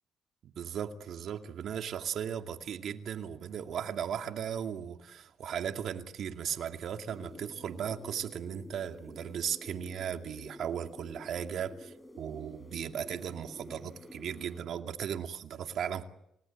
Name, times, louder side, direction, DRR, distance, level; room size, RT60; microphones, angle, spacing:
voice 1, 0.4-16.1, right 8 dB, 70° right, 5 dB, 2.4 m, -37 dB
sound 1, 7.1-14.6, left 1 dB, 10° left, 4.4 m, -50 dB
30.0 x 18.5 x 8.6 m, 0.80 s
cardioid pair, 90°, 0 cm